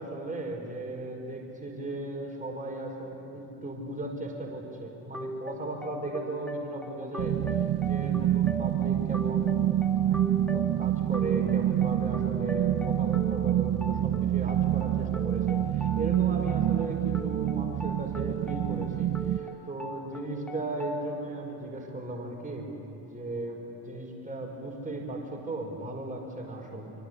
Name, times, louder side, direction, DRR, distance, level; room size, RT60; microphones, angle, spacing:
voice 1, 0.0-7.3 7.8-9.7 10.0-22.8 23.1-26.9, right 2 dB, 15° right, -1 dB, 5.8 m, -36 dB
sound 1, 5.1-21.1, equal, ahead, 1.9 m, -40 dB
sound 2, 7.2-19.4, right 12 dB, 40° right, 0.7 m, -27 dB
25.5 x 24.5 x 8.6 m, 2.9 s
hypercardioid pair, 60°, 46 cm